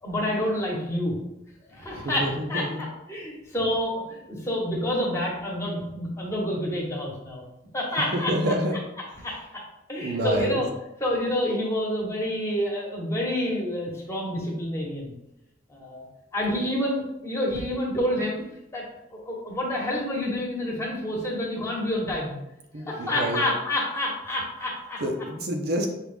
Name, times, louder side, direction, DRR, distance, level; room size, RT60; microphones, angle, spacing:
voice 1, 0.0-1.1 1.7-2.7 3.1-7.4 7.7-8.5 9.2-9.6 9.9-10.7 11.0-15.1 15.7-16.0 16.3-18.4 18.7-18.8 19.1-22.3 22.8-25.0, left 1 dB, 15° left, -4 dB, 1.1 m, -28 dB
voice 2, 1.9-2.8 8.1-8.8 10.0-10.6 22.7-23.4 25.0-25.9, right 1 dB, 60° right, 2 dB, 0.6 m, -27 dB
6.1 x 2.4 x 3.5 m, 0.86 s
head